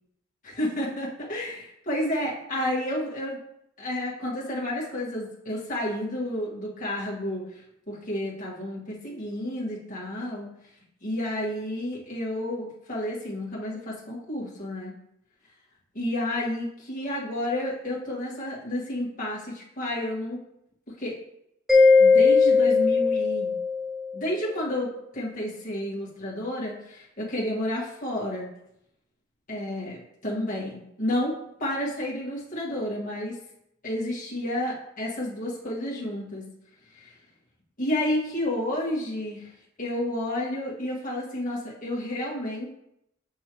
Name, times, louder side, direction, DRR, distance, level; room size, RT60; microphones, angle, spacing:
voice 1, 0.4-3.4 3.8-10.5 11.0-14.9 15.9-20.4 21.0-21.2 22.0-23.5 24.1-28.5 29.5-33.4 33.8-36.5 36.9-37.1 37.8-39.5 39.8-42.7, left 1 dB, 40° left, -5 dB, 1.8 m, -31 dB
Mallet percussion, 21.7-24.2, left 4 dB, ahead, 0.8 m, -19 dB
6.5 x 5.5 x 3.0 m, 0.78 s
head